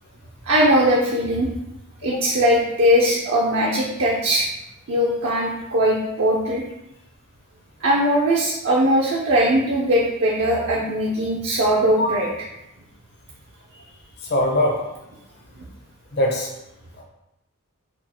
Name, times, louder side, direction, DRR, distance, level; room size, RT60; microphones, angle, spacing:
voice 1, 0.4-1.5 2.0-4.5 4.9-6.6 7.8-12.3, equal, 60° right, -4 dB, 0.6 m, -20 dB
voice 2, 14.2-14.8 16.1-16.5 17.0-17.1, left 1 dB, 50° left, 0 dB, 0.9 m, -22 dB
4.4 x 2.4 x 4.3 m, 0.89 s
head